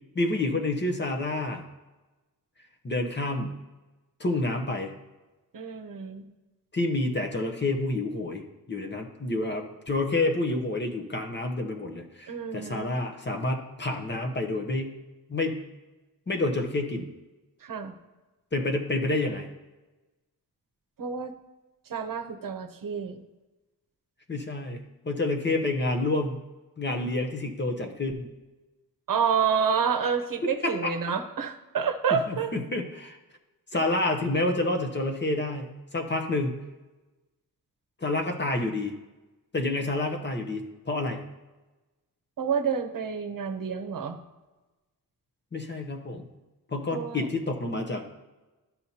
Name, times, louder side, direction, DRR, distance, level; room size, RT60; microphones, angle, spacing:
voice 1, 0.1-1.6 2.8-3.5 4.2-4.9 6.7-14.9 15.3-15.6 16.3-17.1 18.5-19.5 24.3-26.4 26.8-28.3 30.6-30.9 32.1-33.2 33.7-36.6 38.0-38.9 39.5-41.2 45.5-46.3 46.7-48.0, left 2 dB, 30° left, 4 dB, 0.9 m, -29 dB
voice 2, 5.5-6.2 12.3-13.0 17.6-17.9 21.0-21.3 21.9-23.2 29.1-32.5 42.4-44.2 46.9-47.3, right 6 dB, 60° right, 6 dB, 0.8 m, -28 dB
12.0 x 5.6 x 2.8 m, 1.1 s
wide cardioid pair, 120°, 37 cm